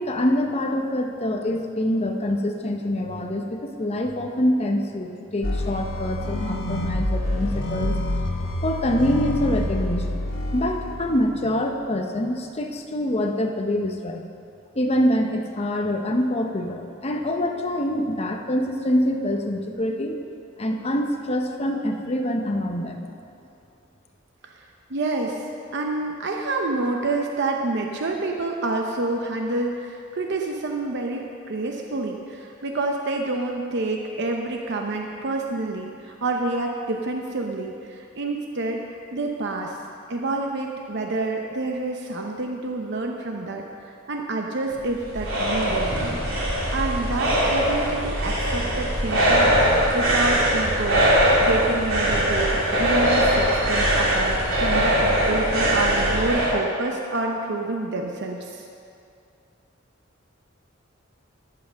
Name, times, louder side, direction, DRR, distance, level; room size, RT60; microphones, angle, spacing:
voice 1, 0.0-8.2 8.6-10.2 10.5-14.2 14.7-20.2 20.6-23.1, left 1 dB, 30° left, 3 dB, 0.8 m, -25 dB
sound 1, 5.4-11.7, left 1 dB, 85° left, 1.2 m, -27 dB
voice 2, 24.9-25.4 25.7-38.8 39.1-39.8 40.1-43.6 44.1-45.9 46.7-49.5 49.9-51.1 51.4-58.7, right 2 dB, 60° right, 2 dB, 0.7 m, -28 dB
sound 2, 44.7-56.5, equal, 85° right, 2.7 m, -21 dB
13.5 x 5.7 x 6.5 m, 2.5 s
head